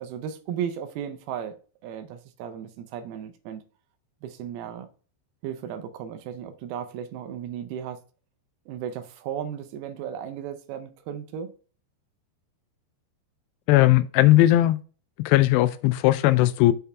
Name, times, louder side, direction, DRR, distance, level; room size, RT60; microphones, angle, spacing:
voice 1, 0.0-1.6 1.8-3.6 4.2-4.9 5.4-8.0 8.7-11.5, right 9 dB, 75° right, 2.5 m, -35 dB
voice 2, 13.7-14.8 15.3-16.7, left 15 dB, 85° left, 2.6 m, -18 dB
6.9 x 5.6 x 3.4 m
omnidirectional pair, 4.9 m